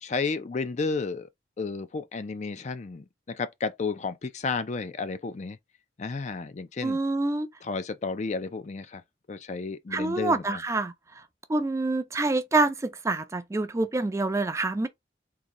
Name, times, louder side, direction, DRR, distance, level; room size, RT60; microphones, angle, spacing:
voice 1, 0.0-1.3 1.6-5.6 6.0-7.0 7.6-9.0 9.3-10.4, left 4 dB, 40° left, 0.4 m, -32 dB
voice 2, 6.8-7.5 9.9-11.2 11.5-14.9, right 2 dB, 15° right, 0.4 m, -27 dB
3.8 x 2.6 x 3.0 m
head